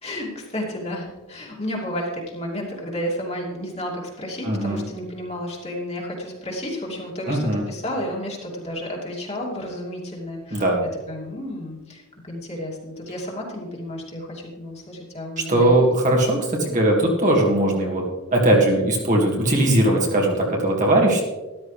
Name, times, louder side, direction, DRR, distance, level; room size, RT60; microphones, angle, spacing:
voice 1, 0.0-10.7 11.1-15.8, equal, 30° left, -2 dB, 2.6 m, -32 dB
voice 2, 4.4-4.8 7.3-7.6 10.5-10.8 15.4-18.0 18.3-21.2, right 1 dB, 35° right, -1 dB, 2.1 m, -19 dB
13.5 x 12.5 x 3.3 m, 1.1 s
head